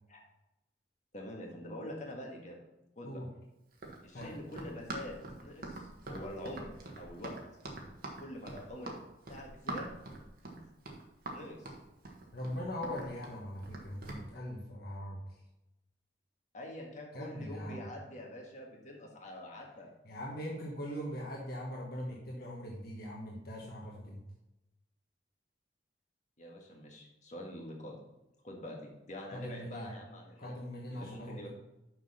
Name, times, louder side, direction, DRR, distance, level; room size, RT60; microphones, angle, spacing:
voice 1, 1.1-2.6 2.9-3.2 4.0-7.3 8.2-8.9 9.3-9.9 10.4-10.6 11.3-11.7 16.5-19.9 26.4-28.0 28.4-30.5 30.9-31.5, left 1 dB, 45° left, 0 dB, 1.7 m, -45 dB
Run, 3.7-14.3, right 2 dB, 60° right, 1.5 m, -44 dB
voice 2, 12.3-15.2 17.1-17.9 20.0-24.2 29.3-29.9 30.4-31.5, equal, 60° left, -2 dB, 1.3 m, -41 dB
6.2 x 5.8 x 5.6 m, 0.95 s
head